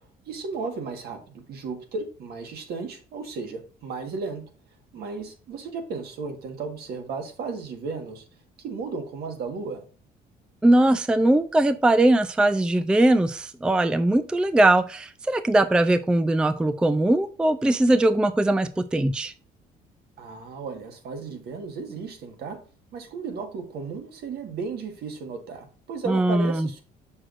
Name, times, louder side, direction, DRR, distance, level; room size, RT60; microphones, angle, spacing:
voice 1, 0.3-4.5 4.9-8.2 8.6-9.8 20.2-22.6 22.9-26.8, right 4 dB, 70° right, 4 dB, 1.5 m, -34 dB
voice 2, 10.6-19.3 26.1-26.7, right 1 dB, 5° right, 11 dB, 0.3 m, -20 dB
6.2 x 6.2 x 2.5 m, 0.38 s
cardioid pair, 110°, 17 cm